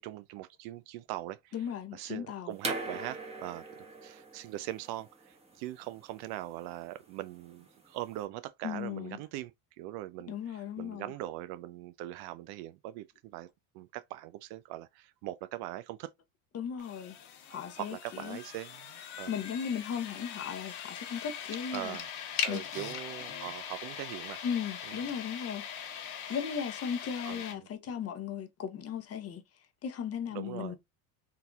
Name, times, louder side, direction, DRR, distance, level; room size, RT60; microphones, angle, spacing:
voice 1, 0.0-1.5 1.9-13.5 13.7-16.1 17.5-19.4 21.7-22.1 22.4-24.4 24.8-25.0 27.2-27.7 30.3-30.7, right 15 dB, 60° right, 0.5 m, -41 dB
voice 2, 1.5-2.5 8.6-9.2 10.3-11.1 16.5-17.2 17.5-18.4 19.3-22.0 22.5-22.6 24.4-25.7 26.3-29.4 29.8-30.8, left 7 dB, 30° left, 0.7 m, -36 dB
sound 1, 2.6-8.2, right 2 dB, 15° right, 1.1 m, -42 dB
sound 2, 16.8-27.5, left 8 dB, 55° left, 1.1 m, -41 dB
3.8 x 2.7 x 2.3 m
hypercardioid pair, 90°, 45 cm